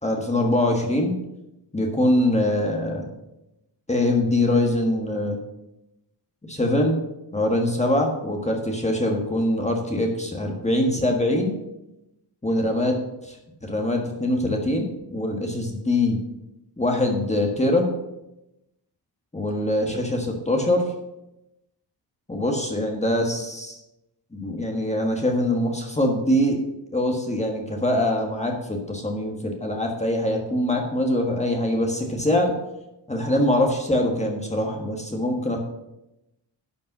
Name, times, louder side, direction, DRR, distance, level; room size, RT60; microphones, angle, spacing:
voice 1, 0.0-1.1 1.7-3.1 3.9-5.4 6.4-7.0 7.3-11.5 12.4-12.9 13.6-16.2 16.8-17.9 19.3-20.8 22.3-23.8 24.3-26.6 26.9-32.5 33.1-35.6, left 1 dB, 15° left, 0 dB, 1.5 m, -23 dB
11.5 x 5.4 x 7.8 m, 0.91 s
wide cardioid pair, 140°, 43 cm